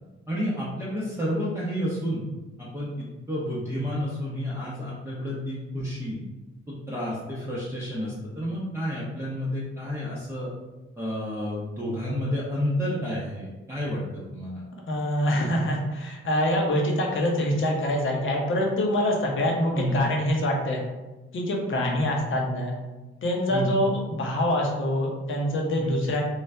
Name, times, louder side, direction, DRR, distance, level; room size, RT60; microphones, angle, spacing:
voice 1, 0.3-2.3 2.6-6.2 6.7-10.5 11.0-14.6 19.7-20.0 21.7-22.0 23.5-23.8 25.8-26.1, equal, 10° right, -8 dB, 0.9 m, -30 dB
voice 2, 14.9-20.8 21.3-22.8 23.2-26.2, left 1 dB, 40° left, 0 dB, 0.9 m, -25 dB
3.1 x 2.3 x 3.3 m, 1.1 s
figure-of-eight pair, 40°, 32 cm